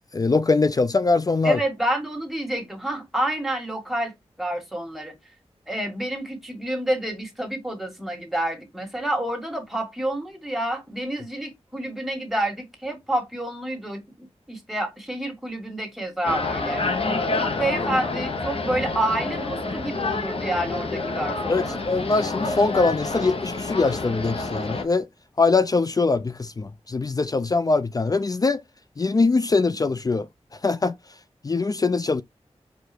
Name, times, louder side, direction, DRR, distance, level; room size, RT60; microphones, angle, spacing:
voice 1, 0.1-1.6 21.5-25.1 25.4-28.6 29.0-30.3 30.6-30.9 31.4-32.2, left 3 dB, 35° left, 0.4 m, -22 dB
voice 2, 1.4-4.1 4.4-5.1 5.7-16.9 17.3-21.8, right 1 dB, ahead, 1.9 m, -28 dB
sound 1, 16.2-24.8, left 3 dB, 60° left, 0.9 m, -28 dB
4.8 x 2.5 x 4.3 m
wide cardioid pair, 70°, 11 cm